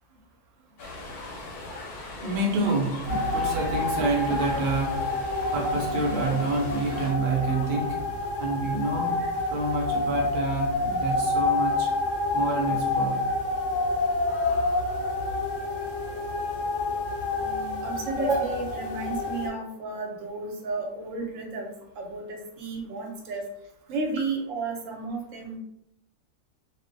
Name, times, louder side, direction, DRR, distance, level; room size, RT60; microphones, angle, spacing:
sound 1, 0.8-7.1, left 2 dB, 90° left, 1.2 m, -40 dB
voice 1, 2.2-5.1 5.5-8.0 8.4-9.2 9.5-11.9 12.3-13.2 17.4-18.1, right 3 dB, 85° right, -1 dB, 0.4 m, -28 dB
sound 2, 3.1-19.5, left 2 dB, 65° left, 0.8 m, -28 dB
voice 2, 17.8-23.4 23.9-25.6, right 3 dB, 70° right, 1 dB, 0.9 m, -32 dB
2.4 x 2.0 x 2.5 m, 0.79 s
omnidirectional pair, 1.6 m